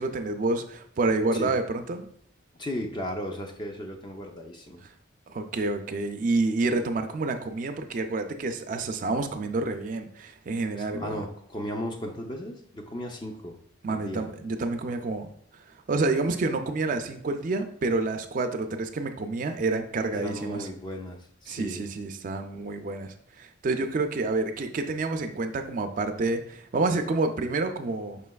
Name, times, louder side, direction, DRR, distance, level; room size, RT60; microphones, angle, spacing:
voice 1, 0.0-2.1 5.3-11.3 13.8-20.7 21.5-28.2, right 3 dB, 40° right, 7 dB, 0.3 m, -28 dB
voice 2, 2.6-4.8 10.7-13.6 13.9-14.3 20.1-21.9, equal, 25° left, 3 dB, 0.4 m, -35 dB
5.4 x 3.2 x 2.3 m, 0.66 s
head